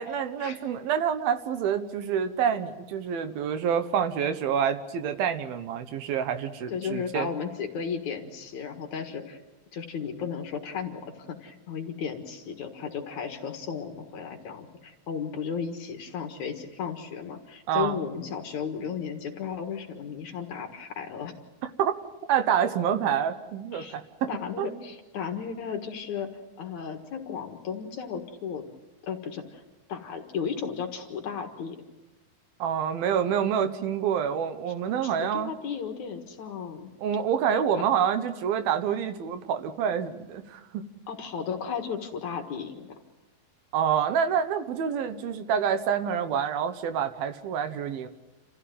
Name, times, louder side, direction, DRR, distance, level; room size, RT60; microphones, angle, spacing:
voice 1, 0.0-7.3 17.7-18.0 21.8-21.9 22.3-24.3 24.6-24.7 32.6-35.5 37.0-40.8 43.7-48.1, right 8 dB, 75° right, 9 dB, 2.9 m, -27 dB
voice 2, 6.7-9.4 9.7-11.0 11.3-21.3 23.7-24.0 24.3-28.6 29.0-29.6 29.9-31.8 35.0-36.9 41.1-42.9, left 6 dB, 55° left, 4 dB, 2.7 m, -34 dB
28.5 x 15.0 x 9.3 m, 1.1 s
omnidirectional pair, 4.5 m